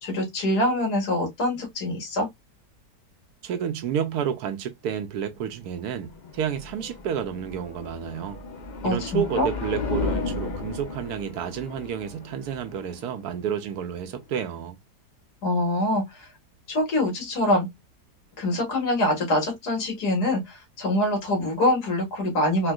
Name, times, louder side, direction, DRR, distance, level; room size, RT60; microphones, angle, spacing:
voice 1, 0.0-2.3 8.8-9.5 15.4-16.3 16.7-17.7 18.4-22.7, left 1 dB, 70° left, 2.0 m, -24 dB
voice 2, 3.4-8.4 8.8-14.8, right 8 dB, 75° right, 1.1 m, -30 dB
sound 1, 5.4-14.4, left 3 dB, 50° left, 0.5 m, -35 dB
4.4 x 2.2 x 2.2 m
omnidirectional pair, 1.8 m